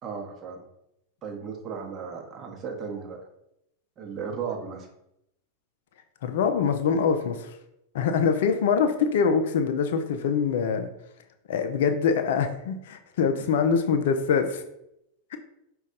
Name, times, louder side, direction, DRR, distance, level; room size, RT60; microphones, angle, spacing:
voice 1, 0.0-0.6 1.2-3.2 4.0-4.9, right 6 dB, 30° right, 2 dB, 0.9 m, -35 dB
voice 2, 6.2-7.5 7.9-10.9 11.5-14.6 15.3-15.4, left 6 dB, 55° left, 8 dB, 0.4 m, -24 dB
5.1 x 2.3 x 3.8 m, 0.82 s
figure-of-eight pair, 90°, 0 cm